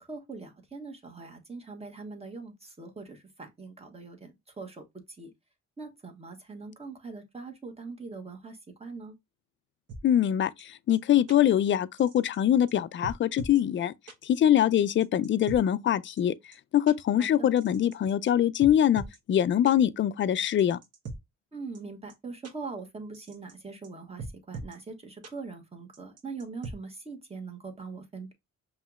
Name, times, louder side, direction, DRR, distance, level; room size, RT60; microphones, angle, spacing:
voice 1, 0.0-5.3 5.8-9.1 17.2-17.5 21.5-28.3, right 4 dB, 20° right, 1.2 m, -42 dB
sound 1, 9.9-10.0 10.6-10.7 10.9-11.0 11.3-11.4 12.0-12.4 12.7-12.8 13.0-13.6 14.1-14.2 14.8-15.6 16.2-16.3 16.5-16.6 16.9-17.0 17.6-18.3 18.6-19.2 19.7-19.8 20.4-21.2 21.7-21.8 22.1-22.2 22.4-22.5 23.1-23.5 23.8-23.9 24.2-24.8 25.2-25.3 25.9-26.7, right 3 dB, 55° right, 1.0 m, -40 dB
voice 2, 10.0-13.9 14.2-16.3 16.7-19.0 19.3-20.8, left 10 dB, 40° left, 0.4 m, -23 dB
5.5 x 3.0 x 2.3 m
cardioid pair, 90°, 30 cm